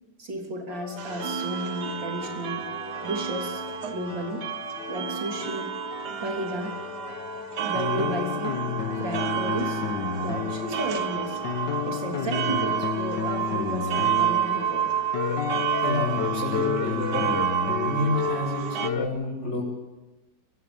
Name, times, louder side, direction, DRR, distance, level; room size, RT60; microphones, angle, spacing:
voice 1, 0.2-2.6 3.0-3.6 3.9-4.5 4.9-5.7 6.2-6.8 7.6-8.6 9.0-9.8 10.2-11.4 11.8-14.9, right 1 dB, 85° right, 2 dB, 4.0 m, -33 dB
sound 1, 0.7-19.1, left 7 dB, 70° left, 1.8 m, -32 dB
sound 2, 1.0-18.9, right 10 dB, 65° right, 1.5 m, -30 dB
voice 2, 15.8-17.3 17.8-19.6, left 1 dB, 40° left, -7 dB, 6.1 m, -29 dB
23.5 x 15.0 x 8.7 m, 1.1 s
omnidirectional pair, 1.9 m